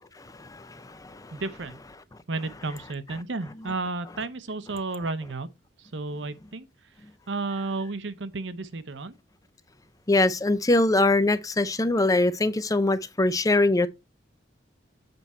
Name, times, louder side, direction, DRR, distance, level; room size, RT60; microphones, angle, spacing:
voice 1, 0.2-1.4 10.1-13.9, left 2 dB, 20° left, 0.6 m, -23 dB
voice 2, 1.3-1.8 2.3-5.5 5.8-6.7 7.3-9.2, right 3 dB, 75° right, 0.8 m, -32 dB
7.9 x 4.7 x 4.3 m
head